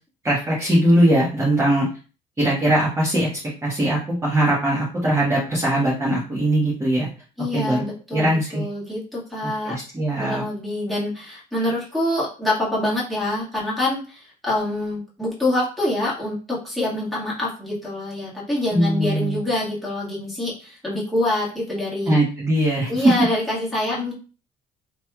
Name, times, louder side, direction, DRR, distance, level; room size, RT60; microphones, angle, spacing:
voice 1, 0.2-1.9 2.4-3.3 3.6-7.1 7.5-7.8 8.1-8.6 9.6-10.4 18.7-19.4 22.1-23.1, right 1 dB, 15° right, -7 dB, 1.2 m, -20 dB
voice 2, 7.4-9.8 10.2-22.1 22.9-24.1, left 1 dB, ahead, -6 dB, 1.7 m, -26 dB
3.3 x 3.0 x 2.3 m, 0.37 s
cardioid pair, 110°, 17 cm